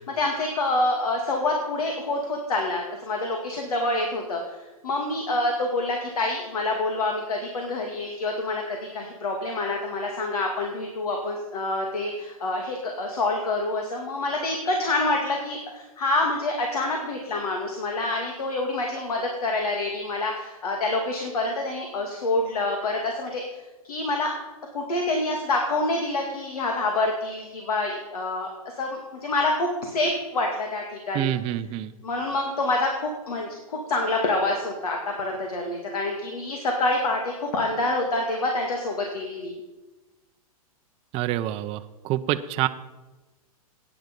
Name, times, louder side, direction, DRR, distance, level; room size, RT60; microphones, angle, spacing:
voice 1, 0.0-4.6 4.8-23.4 23.8-24.3 24.7-31.3 32.0-39.6, left 2 dB, 85° left, 2 dB, 2.3 m, -27 dB
voice 2, 31.1-31.9 41.1-42.7, right 13 dB, 30° right, 8 dB, 0.6 m, -27 dB
15.0 x 9.6 x 5.3 m, 1.1 s
hypercardioid pair, 130°, 19 cm